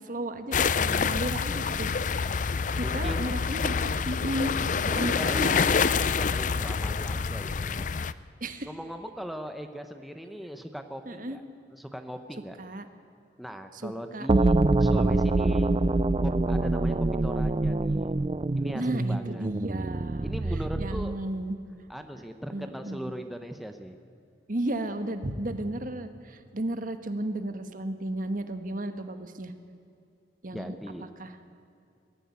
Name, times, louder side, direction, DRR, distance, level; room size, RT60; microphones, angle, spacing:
voice 1, 0.0-2.3 2.7-4.5 4.9-5.8 8.4-8.7 11.0-11.4 12.6-12.9 13.7-14.3 18.7-20.3 20.8-21.6 22.5-23.1 24.5-29.5 30.4-30.8 31.2-31.3, right 1 dB, 50° right, 8 dB, 1.4 m, -34 dB
sound 1, 0.5-8.1, left 5 dB, 45° left, 0.5 m, -27 dB
voice 2, 2.8-3.4 4.9-5.5 5.9-7.9 8.6-11.4 11.7-12.6 13.4-15.7 16.2-16.9 17.2-18.1 18.6-19.5 20.2-21.1 21.9-24.0 30.5-31.0, equal, ahead, 6 dB, 0.9 m, -39 dB
sound 2, 14.3-21.2, right 2 dB, 30° right, 0.4 m, -25 dB
22.0 x 14.5 x 9.5 m, 2.5 s
head